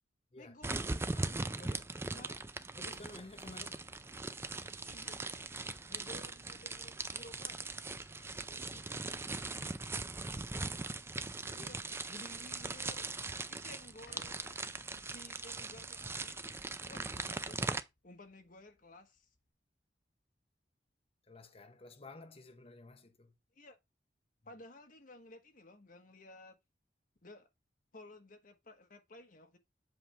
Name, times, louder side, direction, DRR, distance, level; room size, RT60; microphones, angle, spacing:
voice 1, 0.3-2.4 4.8-5.3 5.9-7.7 11.4-13.1 13.5-14.4 15.0-16.6 16.9-17.6 18.0-19.3 23.5-23.8 24.4-26.6 27.2-27.5 27.9-29.6, left 1 dB, 50° left, 1.3 m, -55 dB
sound 1, 0.6-17.8, right 3 dB, 15° right, 0.4 m, -40 dB
voice 2, 2.7-4.3 8.5-8.9 11.5-11.8 12.2-12.3 21.3-23.4, left 2 dB, 35° left, 1.0 m, -53 dB
sound 2, 14.1-19.5, left 2 dB, 85° left, 1.6 m, -65 dB
7.9 x 3.4 x 5.7 m
head